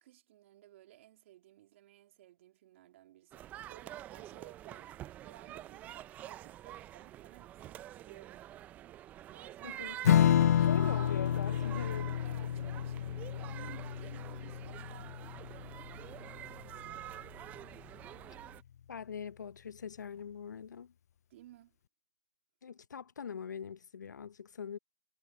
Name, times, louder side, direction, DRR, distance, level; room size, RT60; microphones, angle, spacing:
voice 1, 0.0-8.5 9.3-10.8 12.2-17.3 21.3-21.8, right 14 dB, 45° right, 2.9 m, -58 dB
sound 1, 3.3-18.6, right 13 dB, 15° right, 0.6 m, -47 dB
voice 2, 9.6-10.0 10.7-12.1 18.9-20.9 22.6-24.8, left 7 dB, 75° left, 0.8 m, -43 dB
Strum, 10.0-16.9, left 10 dB, 60° left, 0.4 m, -30 dB
hypercardioid pair, 145°, 10 cm